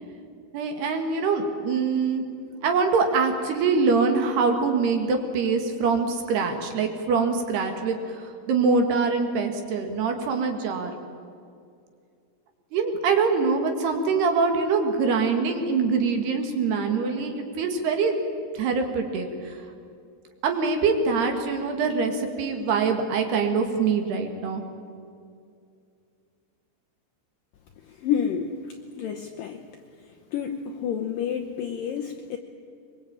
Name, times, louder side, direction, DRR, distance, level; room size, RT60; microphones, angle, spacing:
voice 1, 0.5-2.2 2.6-8.0 8.5-10.9 12.7-18.2 18.6-19.3 20.4-24.6, right 4 dB, 65° right, 5 dB, 3.7 m, -24 dB
voice 2, 28.0-28.5 29.0-29.6 30.3-32.4, left 8 dB, 85° left, 4 dB, 1.9 m, -29 dB
23.0 x 22.0 x 8.9 m, 2.4 s
omnidirectional pair, 5.4 m